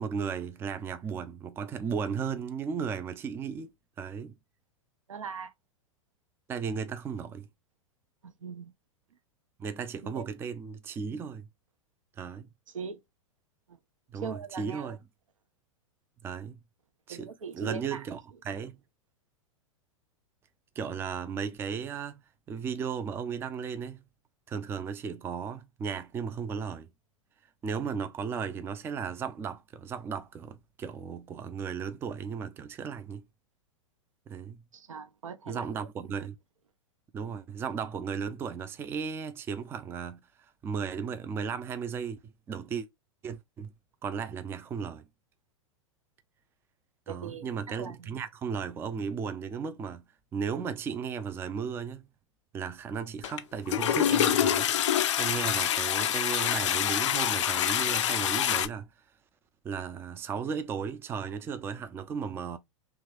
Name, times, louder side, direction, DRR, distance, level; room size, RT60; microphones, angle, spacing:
voice 1, 0.0-4.3 6.5-7.5 9.6-11.5 12.2-12.5 14.1-15.0 16.2-16.6 17.1-18.8 20.8-22.2 22.5-24.0 24.5-26.9 27.6-33.2 34.3-34.6 35.5-36.4 37.1-42.9 43.2-43.7 44.0-45.0 47.1-50.0 50.3-52.1 52.5-54.7 55.2-58.9 59.6-62.6, right 6 dB, 15° right, 0.3 m, -35 dB
voice 2, 5.1-5.5 8.2-8.7 10.0-10.3 12.7-13.0 13.7-13.8 14.2-15.0 17.1-18.0 34.7-35.7 36.0-36.1 47.1-48.1, right 6 dB, 80° right, 0.5 m, -40 dB
Toilet flush, 53.2-53.4 53.7-58.7, left 10 dB, 65° left, 0.4 m, -26 dB
2.9 x 2.3 x 3.2 m
figure-of-eight pair, 95°, 17 cm